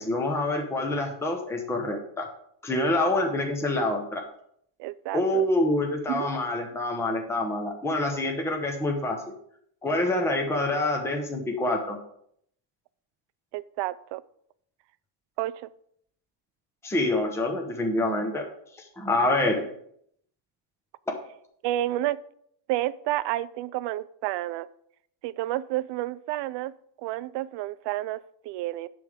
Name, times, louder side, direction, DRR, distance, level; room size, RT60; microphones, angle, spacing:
voice 1, 0.0-2.3 2.6-4.2 5.1-9.3 9.8-12.0 16.8-18.5 18.7-19.6 21.1-21.2, left 2 dB, 5° left, 2 dB, 0.8 m, -26 dB
voice 2, 4.8-5.5 6.1-6.3 13.5-14.2 15.4-15.7 21.6-22.2 22.7-24.7 25.2-26.7 27.0-28.9, right 15 dB, 65° right, 15 dB, 0.5 m, -30 dB
10.5 x 3.5 x 6.4 m, 0.69 s
cardioid pair, 165°, 47 cm